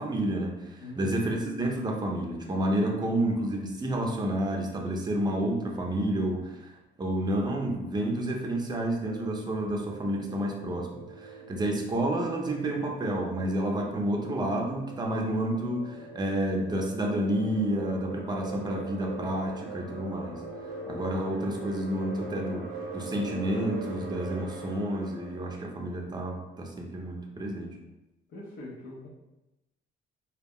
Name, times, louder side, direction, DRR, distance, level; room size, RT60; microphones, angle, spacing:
voice 1, 0.0-20.4 20.9-22.6 22.9-27.7, right 1 dB, 20° right, 0 dB, 0.5 m, -30 dB
voice 2, 0.8-1.2 11.5-11.7 28.3-29.1, left 1 dB, 65° left, -7 dB, 0.7 m, -43 dB
sound 1, 9.1-25.6, right 3 dB, 85° right, 0.6 m, -42 dB
2.3 x 2.0 x 3.5 m, 0.98 s
cardioid pair, 90°, 20 cm